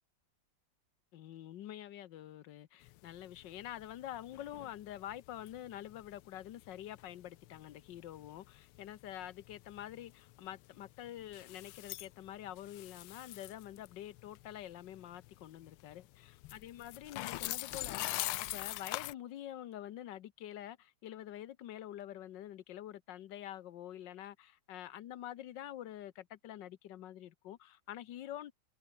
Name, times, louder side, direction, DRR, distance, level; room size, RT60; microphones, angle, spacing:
voice 1, 1.1-16.0 16.5-28.5, left 12 dB, 65° left, 1.4 m, -47 dB
sound 1, 2.8-19.1, left 17 dB, 80° left, 1.5 m, -44 dB
omnidirectional pair, 2.4 m